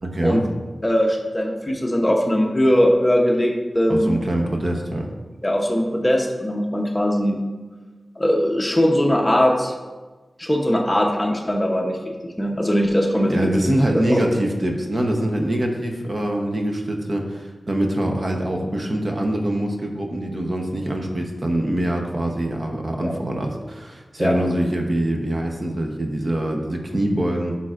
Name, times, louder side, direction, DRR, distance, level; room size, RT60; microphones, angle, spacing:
voice 1, 0.0-0.4 3.9-5.1 13.3-27.6, right 1 dB, 40° right, 2 dB, 0.9 m, -24 dB
voice 2, 0.8-4.2 5.4-7.4 8.2-9.7 10.4-13.5 13.9-14.2 23.0-23.1 24.2-24.3, equal, 20° left, 1 dB, 0.8 m, -20 dB
10.5 x 5.7 x 2.5 m, 1.3 s
wide cardioid pair, 100°, 0 cm